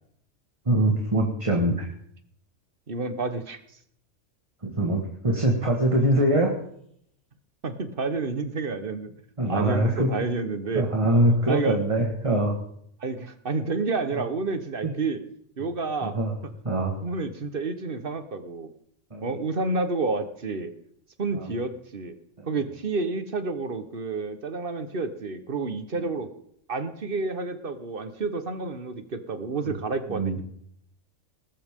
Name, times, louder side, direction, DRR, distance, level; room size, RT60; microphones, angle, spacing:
voice 1, 0.6-1.9 4.6-6.5 9.4-10.1 10.7-12.6 14.1-14.2 14.8-14.9 16.0-16.3 16.6-17.0 19.1-19.4 21.3-21.6 22.4-22.5 25.9-26.1 29.7-29.8 30.1-30.4, right 1 dB, 25° right, 1 dB, 1.7 m, -23 dB
voice 2, 2.9-3.6 7.6-9.1 9.5-10.9 11.5-11.8 13.0-15.2 15.6-16.2 17.0-18.7 19.2-20.7 21.2-22.1 22.5-26.3 26.7-30.4, right 3 dB, 50° right, 9 dB, 1.4 m, -29 dB
20.0 x 13.0 x 3.7 m, 0.68 s
omnidirectional pair, 1.2 m